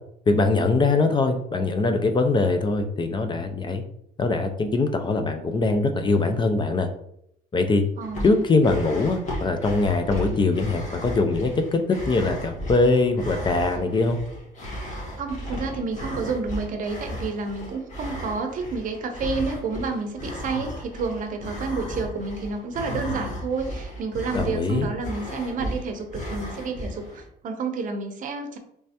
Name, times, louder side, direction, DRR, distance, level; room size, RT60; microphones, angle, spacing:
voice 1, 0.3-3.8 4.2-6.9 7.5-7.8 8.2-14.2 24.3-24.9, left 3 dB, 30° left, 7 dB, 0.4 m, -22 dB
sound 1, 8.0-27.3, equal, 45° left, 1.4 m, -35 dB
voice 2, 8.0-8.4 15.2-28.6, right 4 dB, 50° right, 6 dB, 0.6 m, -30 dB
3.3 x 3.2 x 2.8 m, 0.72 s
cardioid pair, 110°, 17 cm